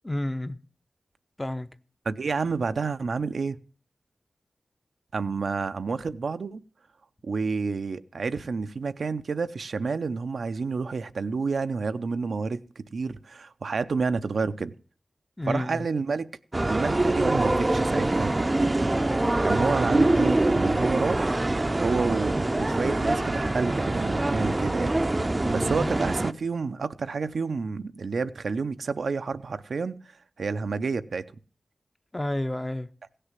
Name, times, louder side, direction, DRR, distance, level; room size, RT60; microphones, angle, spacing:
voice 1, 0.0-0.6 1.4-1.8 15.4-15.9 19.5-19.7 25.8-25.9 32.1-32.9, left 1 dB, 15° left, 0.6 m, -31 dB
voice 2, 2.1-3.6 5.1-6.6 7.2-12.6 12.9-14.7 15.5-16.3 16.7-18.3 19.4-21.4 21.8-24.9 25.3-30.0 30.4-31.2, right 4 dB, 80° right, 0.6 m, -29 dB
sound 1, 16.5-26.3, right 2 dB, 25° right, 0.5 m, -24 dB
16.5 x 6.7 x 7.5 m
wide cardioid pair, 85°, 0 cm